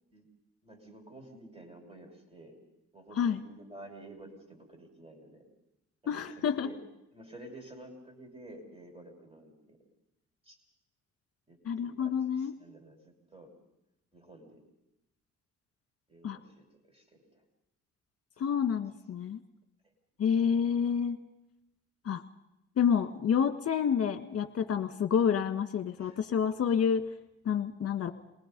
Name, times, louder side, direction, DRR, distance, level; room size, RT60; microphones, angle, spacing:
voice 1, 0.6-2.6 2.9-5.4 6.0-6.8 7.1-9.8 10.4-10.6 11.5-13.5 14.1-14.6 16.1-17.4 18.4-18.6 26.0-26.2, right 1 dB, 20° right, 3 dB, 5.8 m, -51 dB
voice 2, 6.1-6.7 11.7-12.5 16.2-16.4 18.4-19.4 20.2-21.2 22.1-22.2 22.8-27.0 27.5-28.1, left 7 dB, 55° left, 8 dB, 1.7 m, -28 dB
28.0 x 19.5 x 5.4 m, 0.89 s
cardioid pair, 90°, 30 cm